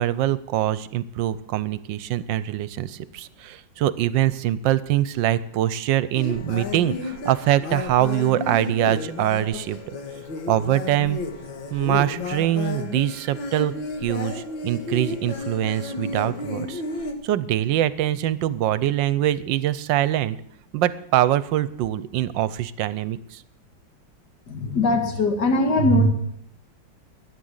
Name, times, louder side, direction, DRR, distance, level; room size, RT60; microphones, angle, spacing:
voice 1, 0.0-9.9 10.5-11.2 11.7-13.7 14.0-16.8 17.2-20.4 20.7-23.4, right 13 dB, 75° right, 17 dB, 1.3 m, -23 dB
sound 1, 6.1-17.1, left 3 dB, 75° left, 2.4 m, -32 dB
voice 2, 24.5-26.1, left 1 dB, 55° left, 5 dB, 2.4 m, -20 dB
12.5 x 9.8 x 8.0 m, 0.68 s
omnidirectional pair, 2.1 m